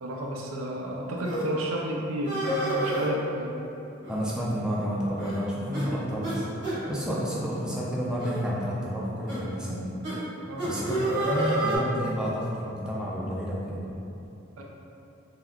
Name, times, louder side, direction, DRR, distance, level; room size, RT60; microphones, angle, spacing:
voice 1, 0.0-3.5 10.5-10.7 14.6-14.7, equal, 85° right, -1 dB, 0.4 m, -32 dB
sound 1, 1.2-1.4 2.2-3.1 4.0-4.4 4.7-4.8 5.2-5.4 5.7-5.9 6.2-6.4 6.6-6.8 7.5-7.7 8.2-8.4 9.3-9.4 10.0-10.2 10.6-11.8, right 1 dB, 60° right, 1.0 m, -29 dB
voice 2, 4.1-6.4 6.9-9.9 10.6-13.9, equal, 5° right, -6 dB, 0.3 m, -30 dB
3.4 x 2.3 x 2.3 m, 2.7 s
head